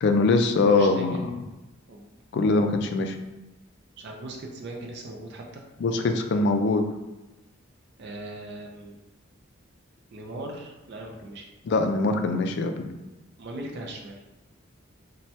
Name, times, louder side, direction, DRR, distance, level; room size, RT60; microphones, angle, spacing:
voice 1, 0.0-1.2 2.3-3.1 5.8-6.9 11.7-12.9, left 3 dB, 60° left, 6 dB, 0.3 m, -22 dB
voice 2, 0.6-1.4 1.9-2.1 4.0-5.6 8.0-8.9 10.1-11.5 13.4-14.2, right 1 dB, 55° right, 1 dB, 0.4 m, -39 dB
3.1 x 2.2 x 2.7 m, 1.0 s
head